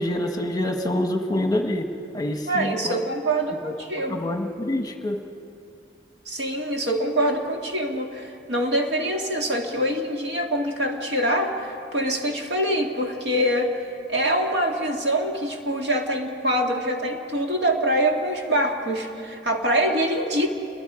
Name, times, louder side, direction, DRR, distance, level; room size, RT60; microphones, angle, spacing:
voice 1, 0.0-1.9 2.1-2.9 3.6-3.7 4.1-5.2, left 1 dB, 20° left, 4 dB, 1.2 m, -26 dB
voice 2, 2.5-4.3 6.3-13.8 14.1-20.5, right 1 dB, 60° right, 1 dB, 2.2 m, -24 dB
29.0 x 23.0 x 5.0 m, 2.6 s
head